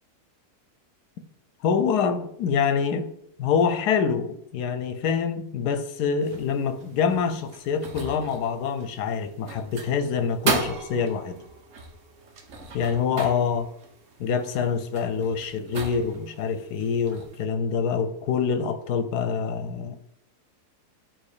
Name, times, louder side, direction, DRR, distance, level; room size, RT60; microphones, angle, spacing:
voice 1, 1.6-3.1 3.4-11.4 12.7-13.7 14.2-20.0, left 6 dB, 85° left, 1.2 m, -26 dB
sound 1, 6.2-17.4, right 4 dB, 55° right, 1.2 m, -36 dB
9.0 x 3.1 x 4.9 m
omnidirectional pair, 1.7 m